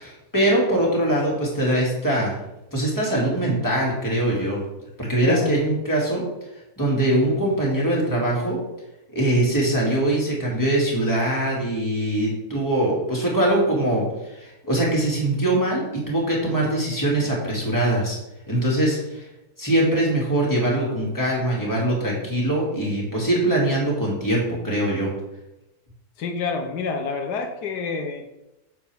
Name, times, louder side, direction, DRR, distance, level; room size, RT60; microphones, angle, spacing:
voice 1, 0.0-2.3 2.7-4.6 5.0-6.2 6.8-8.6 9.1-18.2 18.5-19.3 19.6-25.1, right 1 dB, 10° left, -4 dB, 2.4 m, -22 dB
voice 2, 5.2-5.6 26.2-28.3, left 5 dB, 80° left, 5 dB, 1.4 m, -28 dB
9.1 x 6.9 x 3.5 m, 0.94 s
omnidirectional pair, 1.7 m